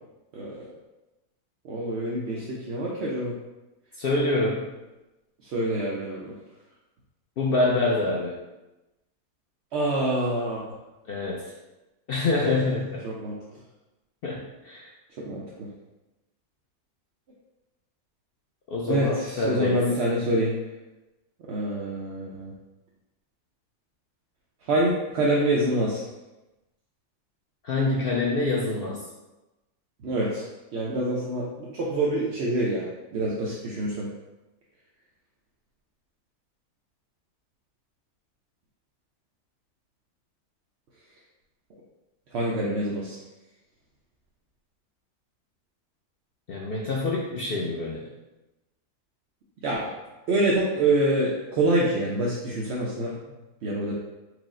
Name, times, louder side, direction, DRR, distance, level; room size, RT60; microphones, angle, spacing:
voice 1, 0.3-0.8 1.6-3.3 5.4-6.3 9.7-10.6 13.0-13.4 15.3-15.4 18.9-20.6 21.5-22.5 24.7-26.0 30.0-30.4 30.7-34.1 42.3-43.2 49.6-49.9 50.3-53.1 53.6-53.9, right 1 dB, 60° right, -4 dB, 0.7 m, -26 dB
voice 2, 4.0-4.6 7.4-8.3 11.1-11.5 12.1-13.0 14.2-14.9 18.7-19.8 27.6-29.0 46.5-48.1, left 2 dB, 75° left, -3 dB, 0.5 m, -26 dB
4.7 x 2.0 x 3.6 m, 1.0 s
omnidirectional pair, 1.5 m